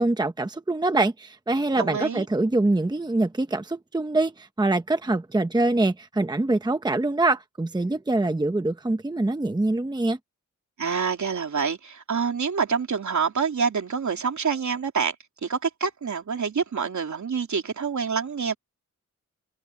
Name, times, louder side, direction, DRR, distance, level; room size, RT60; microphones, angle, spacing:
voice 1, 0.0-10.2, right 2 dB, 15° right, 0.9 m, -24 dB
voice 2, 1.8-2.2 10.8-15.1 15.4-18.5, right 6 dB, 65° right, 3.3 m, -27 dB
wide cardioid pair, 150°, 31 cm